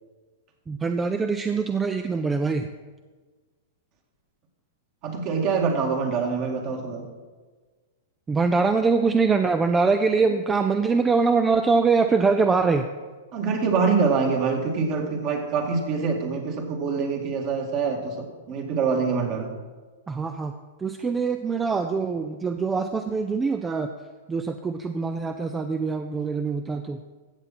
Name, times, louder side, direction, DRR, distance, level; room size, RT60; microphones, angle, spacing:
voice 1, 0.7-2.7 8.3-12.9 20.1-20.5 20.8-23.9 24.3-27.0, right 4 dB, 15° right, 8 dB, 0.5 m, -23 dB
voice 2, 5.0-7.1 13.3-19.5, right 5 dB, 45° right, 2 dB, 2.1 m, -25 dB
15.0 x 7.3 x 4.2 m, 1.4 s
hypercardioid pair, 120°, 0 cm